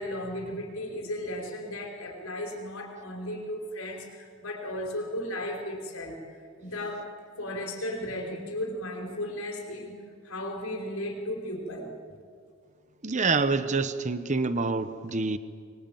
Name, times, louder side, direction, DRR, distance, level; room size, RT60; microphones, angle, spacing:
voice 1, 0.0-6.3 6.6-7.1 7.4-10.0 10.2-12.2, left 1 dB, 85° left, 1 dB, 5.1 m, -35 dB
voice 2, 13.0-15.4, right 3 dB, 35° right, 12 dB, 0.9 m, -26 dB
24.0 x 23.0 x 9.1 m, 2.1 s
head